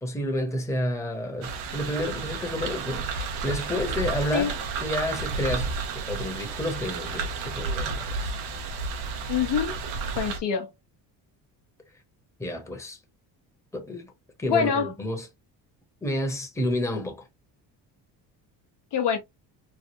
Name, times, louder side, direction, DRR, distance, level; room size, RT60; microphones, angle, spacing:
voice 1, 0.0-8.3 12.4-13.0 13.7-14.1 14.4-15.3 16.0-17.2, left 1 dB, 5° left, 1.0 m, -30 dB
sound 1, 1.4-10.4, right 4 dB, 70° right, 0.9 m, -31 dB
voice 2, 9.3-9.7 10.1-10.7 14.5-14.9 18.9-19.2, left 7 dB, 60° left, 1.0 m, -25 dB
3.3 x 2.2 x 2.8 m
hypercardioid pair, 60°, 48 cm